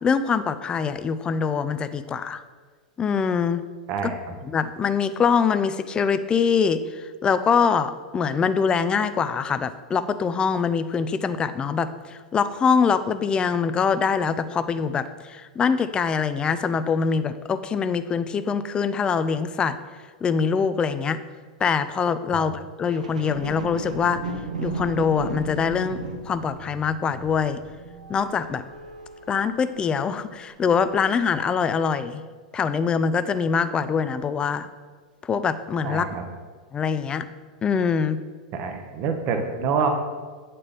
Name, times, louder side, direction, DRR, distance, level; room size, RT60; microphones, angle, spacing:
voice 1, 0.0-2.4 3.0-3.6 4.0-4.1 4.4-19.8 20.2-21.2 21.6-24.2 24.6-26.0 26.3-27.6 28.1-28.6 29.3-32.2 32.5-34.7 35.2-36.1 36.7-37.2 37.6-38.2, left 6 dB, 20° left, 13 dB, 0.3 m, -24 dB
voice 2, 3.9-4.3 22.3-22.5 35.8-36.2 38.5-39.9, right 6 dB, 45° right, 5 dB, 0.8 m, -27 dB
sound 1, 22.9-30.3 30.9-31.0, right 2 dB, 80° right, 0.7 m, -36 dB
8.4 x 4.2 x 3.4 m, 1.5 s
hypercardioid pair, 95°, 4 cm